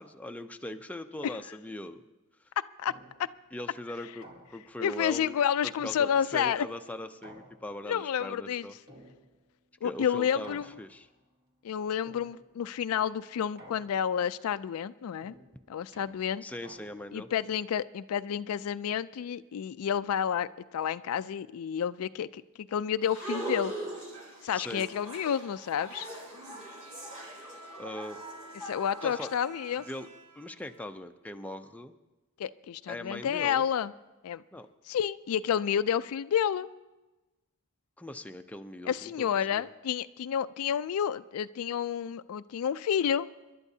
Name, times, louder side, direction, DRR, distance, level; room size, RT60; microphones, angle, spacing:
voice 1, 0.0-2.0 3.5-5.4 5.6-8.8 9.8-11.1 16.4-17.3 24.5-24.9 27.8-28.2 29.0-29.3 29.9-30.1 30.4-31.9 32.9-33.7 34.5-34.7 38.0-39.7, left 1 dB, 5° left, 6 dB, 0.5 m, -40 dB
sound 1, 2.9-3.4 4.2-4.9 5.8-6.5 7.2-8.0 8.9-9.6 10.4-11.2 12.1-12.7 13.6-14.3 15.2-17.2, right 1 dB, 50° right, 1.7 m, -54 dB
voice 2, 4.8-6.7 7.9-8.7 9.8-10.7 11.6-15.3 15.7-16.4 17.1-20.5 20.7-23.7 24.4-26.1 28.6-29.8 32.4-33.9 34.2-34.4 34.9-36.7 38.9-43.3, left 8 dB, 70° left, 15 dB, 0.3 m, -30 dB
sound 2, 23.0-29.9, right 1 dB, 30° right, 3.0 m, -41 dB
Bowed string instrument, 26.2-31.3, right 2 dB, 70° right, 1.7 m, -51 dB
27.5 x 11.5 x 2.7 m, 1.1 s
head